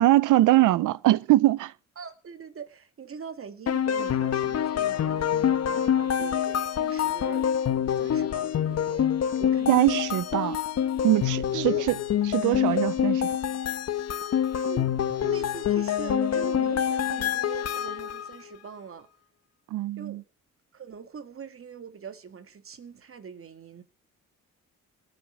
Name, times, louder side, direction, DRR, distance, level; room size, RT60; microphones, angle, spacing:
voice 1, 0.0-1.7 9.7-10.6 11.0-12.0 12.3-13.3 19.7-20.2, right 16 dB, 85° right, 0.8 m, -22 dB
voice 2, 2.0-7.5 7.9-9.1 9.4-10.2 11.5-11.9 14.4-14.9 15.2-19.1 20.0-20.2 20.7-23.8, right 6 dB, 45° right, 2.4 m, -42 dB
sound 1, 3.7-18.4, left 9 dB, 55° left, 1.4 m, -26 dB
18.5 x 8.4 x 8.6 m
cardioid pair, 90°, 30 cm